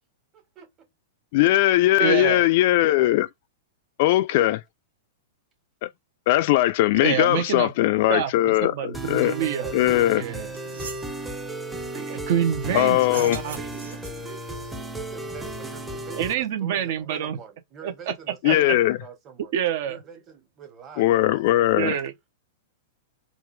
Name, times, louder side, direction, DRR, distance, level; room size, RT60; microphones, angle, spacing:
voice 1, 0.3-0.9 10.2-10.6 13.4-19.5 19.8-21.5, right 7 dB, 30° right, 1.4 m, -46 dB
voice 2, 1.3-3.3 4.0-4.6 5.8-5.9 6.3-9.4 9.7-10.2 12.7-13.4 18.4-19.0 21.0-21.9, left 15 dB, 55° left, 0.3 m, -20 dB
voice 3, 2.0-2.4 7.0-7.7 8.1-9.7 10.1-10.5 11.9-13.6 16.1-17.4 17.8-18.1 18.4-18.6 19.5-20.0 21.7-22.1, right 10 dB, 60° right, 0.7 m, -27 dB
sound 1, 8.9-16.3, right 1 dB, 10° right, 0.7 m, -34 dB
sound 2, 10.1-10.2 10.5-11.1 13.0-14.3, right 5 dB, 80° right, 1.4 m, -40 dB
3.6 x 2.5 x 3.2 m
hypercardioid pair, 110°, 0 cm